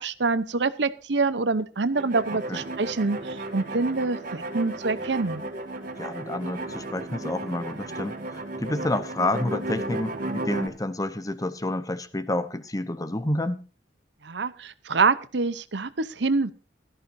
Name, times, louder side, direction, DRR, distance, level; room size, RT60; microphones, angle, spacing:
voice 1, 0.0-5.4 14.2-16.5, right 4 dB, 70° right, 0.8 m, -26 dB
sound 1, 1.9-10.7, right 2 dB, 50° right, 2.4 m, -34 dB
voice 2, 6.0-13.6, left 1 dB, 20° left, 0.9 m, -29 dB
17.0 x 13.5 x 2.7 m
head